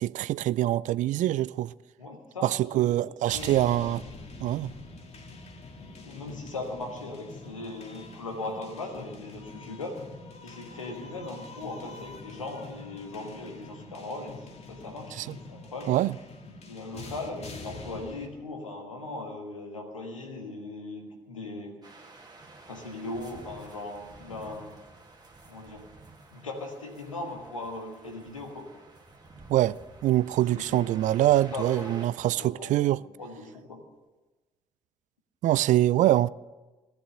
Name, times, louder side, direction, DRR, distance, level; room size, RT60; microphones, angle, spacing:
voice 1, 0.0-1.7 2.4-4.0 4.4-4.7 15.2-15.3 15.9-16.1 29.5-29.8 30.0-33.0 35.4-36.3, right 14 dB, 50° right, 0.4 m, -24 dB
voice 2, 2.0-2.5 2.8-3.9 6.0-10.0 10.4-15.9 16.7-21.8 22.7-24.8 25.5-25.9 26.3-28.7 30.4-30.9 31.5-32.0 32.3-33.8, left 2 dB, 85° left, 1.4 m, -39 dB
sound 1, 3.3-18.3, left 3 dB, 40° left, 1.8 m, -45 dB
sound 2, 21.8-32.1, right 2 dB, 25° right, 2.0 m, -51 dB
16.5 x 10.0 x 6.6 m
figure-of-eight pair, 45°, 16 cm